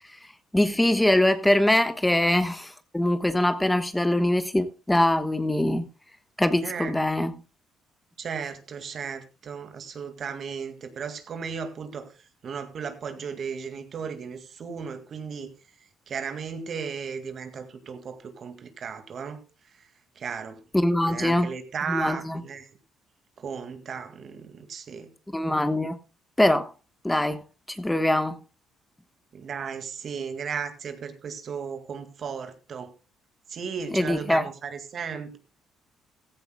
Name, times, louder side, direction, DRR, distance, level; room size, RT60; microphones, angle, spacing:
voice 1, 0.5-5.9 6.4-7.3 20.7-21.5 21.9-22.4 25.3-26.0 26.4-26.7 27.0-27.4 27.7-28.4 33.9-34.5, left 1 dB, 10° left, 1.2 m, -23 dB
voice 2, 6.6-7.0 8.2-12.1 12.4-15.5 16.1-19.4 20.2-20.6 21.1-22.7 23.4-25.1 29.3-32.9 33.5-35.4, right 6 dB, 55° right, 2.0 m, -35 dB
15.5 x 14.0 x 2.2 m
supercardioid pair, 75°, 0 cm